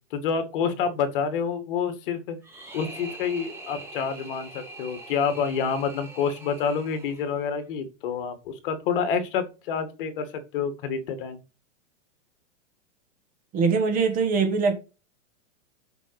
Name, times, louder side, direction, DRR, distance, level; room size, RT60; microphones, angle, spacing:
voice 1, 0.1-2.4 2.7-11.4, left 6 dB, 45° left, 1.9 m, -28 dB
sound 1, 2.4-7.5, right 2 dB, 5° right, 1.7 m, -43 dB
voice 2, 13.5-14.7, right 5 dB, 20° right, 1.3 m, -22 dB
8.0 x 5.3 x 4.8 m
supercardioid pair, 165°, 38 cm